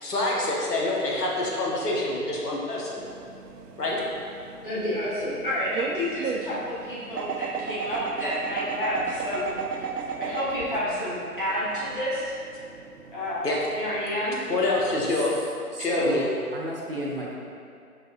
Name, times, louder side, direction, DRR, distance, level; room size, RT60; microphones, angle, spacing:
voice 1, 0.0-3.0 3.8-4.0 13.4-13.6 14.5-15.3 15.8-16.3, left 2 dB, 85° left, -4 dB, 1.3 m, -26 dB
sound 1, 3.0-15.1, right 6 dB, 85° right, 0.6 m, -36 dB
voice 2, 4.6-9.5 9.8-9.9 10.2-12.2 13.1-14.5, left 1 dB, 35° left, -10 dB, 1.2 m, -30 dB
voice 3, 15.7-16.2 16.5-17.3, right 1 dB, 40° right, -4 dB, 0.7 m, -31 dB
4.7 x 4.4 x 2.5 m, 2.4 s
figure-of-eight pair, 160°, 46 cm